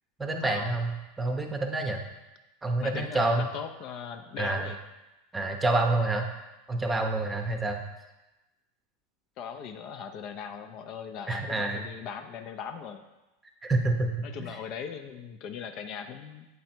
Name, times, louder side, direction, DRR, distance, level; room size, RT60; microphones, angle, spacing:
voice 1, 0.2-0.9 1.2-2.0 2.6-3.5 4.4-4.7 5.3-6.3 6.7-7.8 11.3-11.8 13.6-14.5, right 2 dB, 15° right, 4 dB, 0.7 m, -27 dB
voice 2, 2.8-4.8 9.4-13.0 14.2-16.5, left 7 dB, 50° left, 7 dB, 0.5 m, -39 dB
7.9 x 3.1 x 4.4 m, 1.0 s
hypercardioid pair, 110°, 0 cm